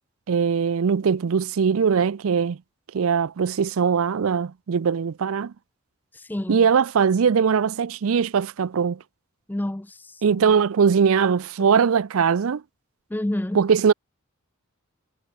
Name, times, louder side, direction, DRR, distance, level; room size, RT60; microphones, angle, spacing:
voice 1, 0.3-2.6 2.9-5.5 6.5-9.0 10.2-12.6 13.5-13.9, right 6 dB, 70° right, 0.4 m, -21 dB
voice 2, 6.1-6.7 9.5-10.5 11.6-11.7 13.1-13.6, left 1 dB, 10° left, 0.4 m, -30 dB
head